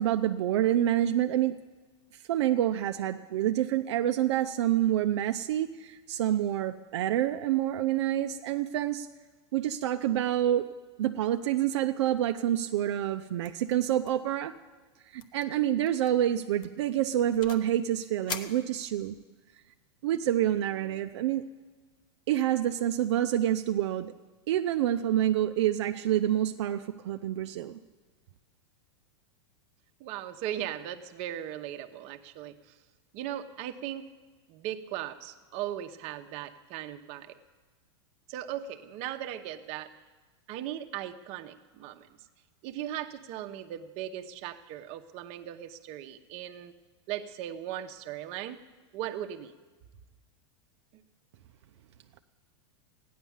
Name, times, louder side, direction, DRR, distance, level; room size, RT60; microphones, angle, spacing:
voice 1, 0.0-1.5 2.3-9.1 9.5-10.7 11.0-14.5 15.1-19.2 20.0-21.4 22.3-24.1 24.5-27.8, right 12 dB, 75° right, 6 dB, 0.6 m, -27 dB
sound 1, 13.4-13.7 14.0-14.3 14.6-14.7 15.2-15.5 15.9-16.1 16.6-17.7 18.3-19.3, left 6 dB, 30° left, 1.0 m, -42 dB
voice 2, 30.0-32.8 33.1-34.1 34.5-37.3 38.3-39.9 40.5-42.1 42.6-46.7 47.1-48.6 48.9-49.5, right 11 dB, 45° right, 7 dB, 1.0 m, -38 dB
15.0 x 10.5 x 7.2 m, 1.4 s
supercardioid pair, 135°, 15 cm